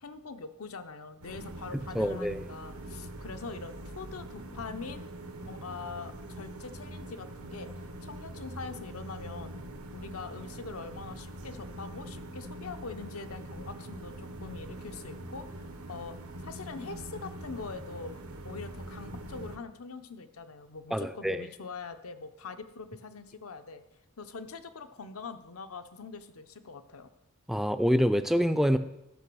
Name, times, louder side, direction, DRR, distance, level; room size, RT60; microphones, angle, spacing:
voice 1, 0.0-5.1 5.4-7.7 8.0-9.5 9.9-23.8 24.2-27.1, left 4 dB, 85° left, 9 dB, 0.8 m, -43 dB
sound 1, 1.2-19.6, right 1 dB, 85° right, 1.3 m, -43 dB
voice 2, 1.9-2.4 20.9-21.4 27.5-28.8, equal, ahead, 10 dB, 0.4 m, -26 dB
12.5 x 5.9 x 6.2 m, 0.95 s
head